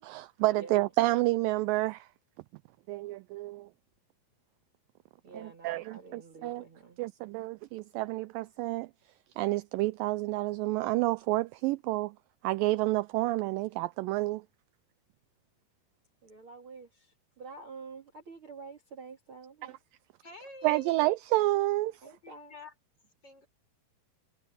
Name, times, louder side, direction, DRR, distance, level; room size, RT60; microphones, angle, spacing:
voice 1, 0.0-2.1 2.9-3.7 5.3-6.7 7.0-8.9 9.4-12.2 12.4-14.4 20.6-22.0, right 19 dB, 85° right, 2.0 m, -29 dB
voice 2, 0.5-0.8 5.2-7.0 16.2-19.8 22.0-22.5, right 4 dB, 40° right, 2.5 m, -48 dB
voice 3, 20.2-20.9 22.0-22.7 23.2-23.5, left 2 dB, 25° left, 6.9 m, -48 dB
omnidirectional pair, 4.5 m